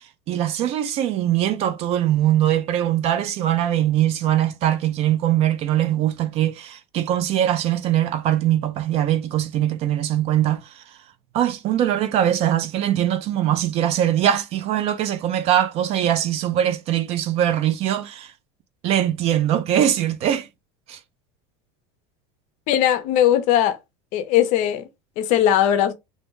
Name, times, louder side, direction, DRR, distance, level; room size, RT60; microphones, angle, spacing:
voice 1, 0.0-10.8 11.3-18.3 18.8-20.5 20.9-21.0, right 11 dB, 40° right, 0.4 m, -22 dB
voice 2, 22.7-23.8 24.1-24.9 25.2-25.9, left 11 dB, 50° left, 0.6 m, -19 dB
2.6 x 2.1 x 2.9 m
supercardioid pair, 135°, 16 cm